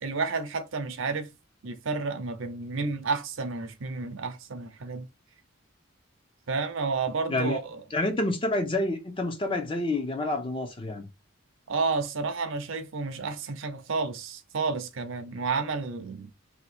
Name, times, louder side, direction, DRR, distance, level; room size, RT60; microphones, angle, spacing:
voice 1, 0.0-1.3 1.6-5.1 6.5-7.8 11.7-16.3, right 4 dB, 65° right, 0.6 m, -31 dB
voice 2, 7.3-7.6 7.9-11.1, left 2 dB, 25° left, 0.6 m, -28 dB
2.8 x 2.2 x 4.1 m
head